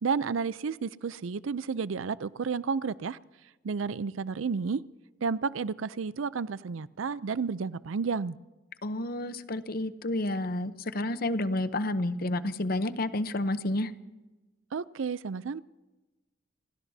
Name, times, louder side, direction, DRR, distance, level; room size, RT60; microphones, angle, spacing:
voice 1, 0.0-3.2 3.6-4.8 5.2-8.4 14.7-15.6, right 5 dB, 85° right, 0.5 m, -31 dB
voice 2, 8.8-13.9, left 1 dB, 50° left, 0.8 m, -30 dB
29.5 x 17.0 x 2.8 m
head